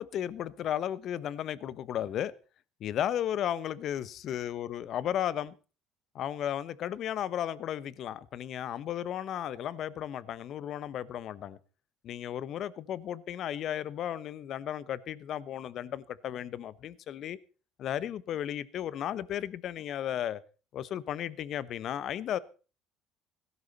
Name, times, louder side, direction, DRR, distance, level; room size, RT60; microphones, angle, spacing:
voice 1, 0.0-2.3 2.8-5.5 6.1-11.6 12.0-17.4 17.8-20.4 20.7-22.4, left 10 dB, 55° left, 19 dB, 1.0 m, -34 dB
16.5 x 12.5 x 4.2 m, 0.35 s
supercardioid pair, 80°, 0 cm